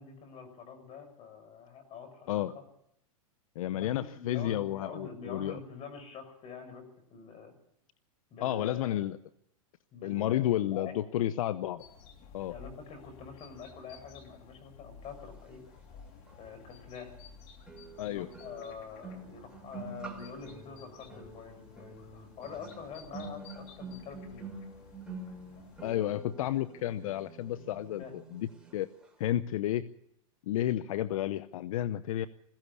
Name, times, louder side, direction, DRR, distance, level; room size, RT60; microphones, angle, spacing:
voice 1, 0.0-2.6 3.7-6.8 7.1-7.5 8.3-9.0 9.9-10.9 12.5-15.6 16.4-17.2 18.1-24.4 28.0-28.1, left 5 dB, 35° left, 8 dB, 6.3 m, -46 dB
voice 2, 3.6-5.6 8.4-9.2 10.0-11.8 12.3-12.5 18.0-18.3 25.8-28.9 29.2-29.9 30.5-32.3, left 12 dB, 70° left, 15 dB, 0.8 m, -31 dB
sound 1, 11.8-26.0, left 6 dB, 50° left, 3.1 m, -54 dB
sound 2, 16.3-16.4 17.7-28.8 29.0-29.3, right 3 dB, 5° right, 3.6 m, -47 dB
21.5 x 16.0 x 8.3 m, 0.74 s
hypercardioid pair, 125°, 19 cm